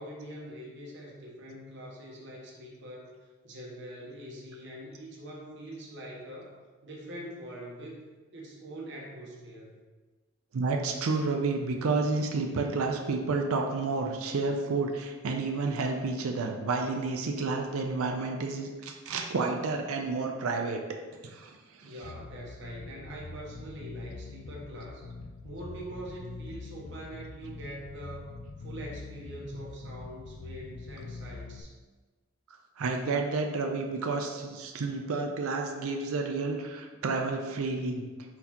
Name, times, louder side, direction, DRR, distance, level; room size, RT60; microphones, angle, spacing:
voice 1, 0.0-6.5 6.8-9.7 21.8-25.0 25.4-28.3 28.6-31.7, right 1 dB, 55° right, -2 dB, 0.9 m, -43 dB
voice 2, 10.5-20.8 21.2-21.5 21.8-21.9 32.8-38.0, right 3 dB, 80° right, 3 dB, 0.5 m, -30 dB
Bass guitar, 22.0-31.6, left 3 dB, 70° left, 0.4 m, -44 dB
4.1 x 4.0 x 2.9 m, 1.3 s
head